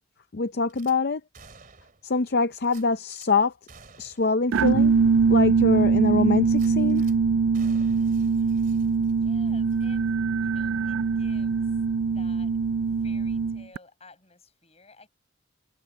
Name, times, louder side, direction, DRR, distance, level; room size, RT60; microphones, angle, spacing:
voice 1, 0.3-1.2 2.0-3.5 4.0-4.9 5.3-7.1, left 3 dB, 50° left, 0.5 m, -24 dB
Gunshot gunfire / Glass, 0.7-1.0 1.3-2.1 2.6-3.3 3.7-4.3 4.7-4.8 5.2-5.3 6.5-7.2 7.5-9.3 9.7-9.8, right 5 dB, 40° right, 3.0 m, -52 dB
sound 1, 4.5-13.8, right 5 dB, 70° right, 0.3 m, -22 dB
voice 2, 9.2-10.1 10.4-12.5 12.9-15.1, left 3 dB, 30° left, 7.3 m, -53 dB
head